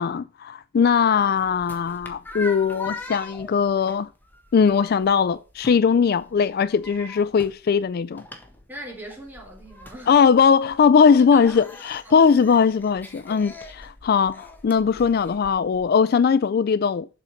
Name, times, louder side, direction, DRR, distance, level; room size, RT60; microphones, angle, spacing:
voice 1, 0.0-4.1 4.5-8.2 10.1-17.1, left 6 dB, 45° left, 0.3 m, -20 dB
sound 1, 0.9-15.9, left 2 dB, 10° left, 1.4 m, -42 dB
voice 2, 8.7-10.1 11.1-11.4 12.0-12.4, right 1 dB, 10° right, 3.7 m, -40 dB
7.8 x 6.3 x 5.2 m
head